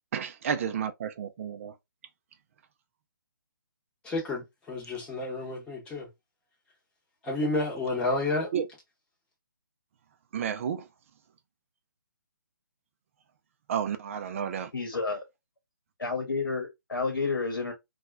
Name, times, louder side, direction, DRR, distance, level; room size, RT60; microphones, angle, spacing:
voice 1, 0.1-1.7 8.5-8.7 10.3-10.8 13.7-14.7, right 8 dB, 40° right, 0.4 m, -31 dB
voice 2, 4.0-6.1 7.2-8.5, left 2 dB, 10° left, 0.9 m, -30 dB
voice 3, 14.3-15.2 16.0-17.7, left 4 dB, 75° left, 1.0 m, -31 dB
2.8 x 2.3 x 2.3 m
figure-of-eight pair, 140°, 11 cm